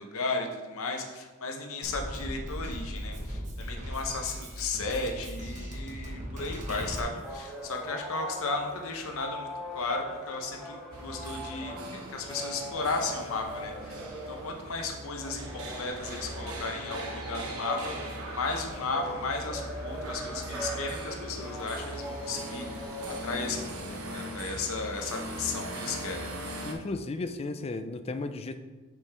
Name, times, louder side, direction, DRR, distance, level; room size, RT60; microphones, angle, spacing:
voice 1, 0.0-14.0 14.3-26.3, left 3 dB, 65° left, 3 dB, 0.8 m, -35 dB
Drum kit, 1.8-7.0, equal, 35° right, 1.0 m, -38 dB
sound 1, 7.1-24.1, equal, ahead, 0.8 m, -41 dB
sound 2, 10.9-26.7, right 1 dB, 70° right, 0.9 m, -40 dB
voice 2, 26.6-28.6, left 3 dB, 25° left, 10 dB, 0.3 m, -34 dB
6.5 x 5.3 x 3.4 m, 1.2 s
head